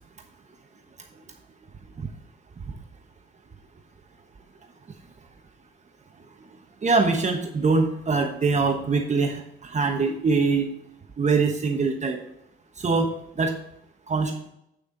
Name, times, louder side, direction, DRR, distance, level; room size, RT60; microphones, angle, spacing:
voice 1, 6.8-10.7 11.2-12.2 12.8-13.5 14.1-14.3, right 4 dB, 35° right, 3 dB, 1.1 m, -23 dB
8.4 x 6.4 x 3.9 m, 0.77 s
cardioid pair, 90°, 20 cm